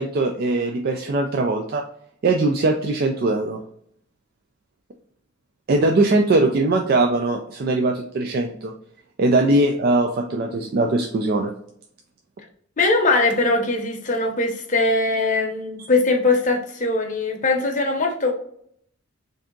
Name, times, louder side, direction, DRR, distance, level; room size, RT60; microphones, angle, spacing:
voice 1, 0.0-1.8 2.2-3.6 5.7-8.7 9.2-11.5, right 2 dB, 45° right, 2 dB, 0.3 m, -21 dB
voice 2, 12.8-18.3, left 3 dB, 40° left, 2 dB, 0.7 m, -21 dB
3.4 x 2.7 x 3.7 m, 0.67 s
head